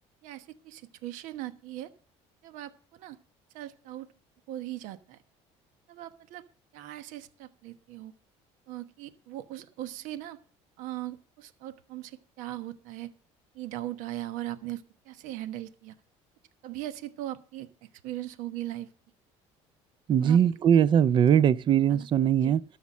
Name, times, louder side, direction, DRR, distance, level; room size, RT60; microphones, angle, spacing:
voice 1, 0.2-1.9 2.4-3.2 3.5-4.1 4.5-5.2 5.9-6.4 6.7-8.1 8.7-10.4 10.8-13.1 13.5-15.9 16.6-17.7 18.0-18.9 20.2-20.4 21.3-21.4 21.9-22.1 22.4-22.5, right 14 dB, 75° right, 1.2 m, -39 dB
voice 2, 20.1-22.6, right 9 dB, 40° right, 0.5 m, -21 dB
12.5 x 7.2 x 7.4 m
cardioid pair, 125°, 13 cm